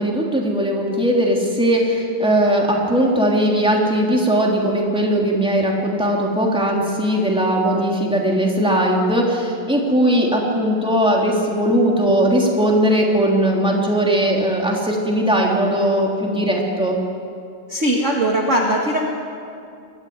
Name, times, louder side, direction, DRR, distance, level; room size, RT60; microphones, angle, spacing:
voice 1, 0.0-17.0, right 1 dB, ahead, -2 dB, 3.1 m, -19 dB
voice 2, 17.7-19.0, right 1 dB, 35° right, -1 dB, 2.0 m, -19 dB
22.5 x 15.0 x 9.6 m, 2.5 s
omnidirectional pair, 2.4 m